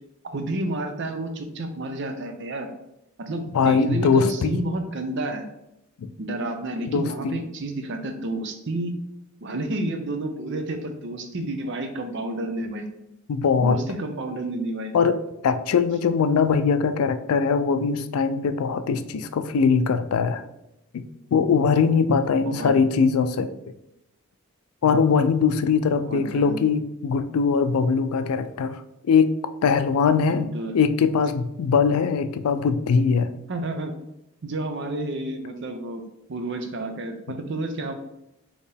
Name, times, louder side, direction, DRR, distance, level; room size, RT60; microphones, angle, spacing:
voice 1, 0.2-2.7 3.2-5.4 6.2-8.9 9.4-12.8 13.6-14.9 22.4-22.7 26.0-26.6 30.3-30.7 33.5-33.9 34.4-36.0 36.3-37.9, right 2 dB, 55° right, 6 dB, 0.6 m, -30 dB
voice 2, 3.5-4.6 6.0-6.1 6.9-7.4 13.3-13.8 14.9-20.4 20.9-21.0 21.3-23.5 24.8-28.8 29.1-29.3 29.6-33.3, left 5 dB, 85° left, 11 dB, 0.4 m, -21 dB
4.3 x 3.0 x 3.4 m, 0.86 s
head